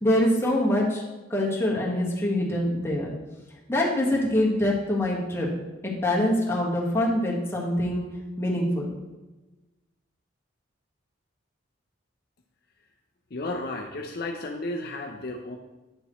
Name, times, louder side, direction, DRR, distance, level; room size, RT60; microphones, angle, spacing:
voice 1, 0.0-1.0 1.3-3.1 3.7-5.5 5.8-8.0 8.4-8.9, left 1 dB, 15° left, -4 dB, 1.4 m, -24 dB
voice 2, 13.3-15.6, left 2 dB, 55° left, 1 dB, 0.6 m, -33 dB
9.0 x 6.8 x 3.1 m, 1.1 s
head